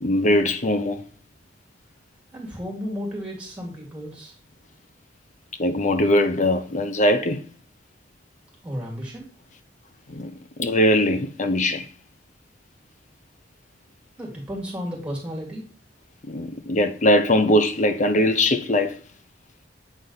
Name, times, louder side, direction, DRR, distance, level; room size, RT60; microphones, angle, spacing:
voice 1, 0.0-1.0 5.6-7.4 10.1-10.3 10.6-11.9 16.2-19.0, left 1 dB, 40° left, 0.6 m, -21 dB
voice 2, 2.3-4.4 8.6-9.3 14.2-15.6, equal, 5° right, 2.5 m, -33 dB
8.1 x 4.0 x 3.9 m
head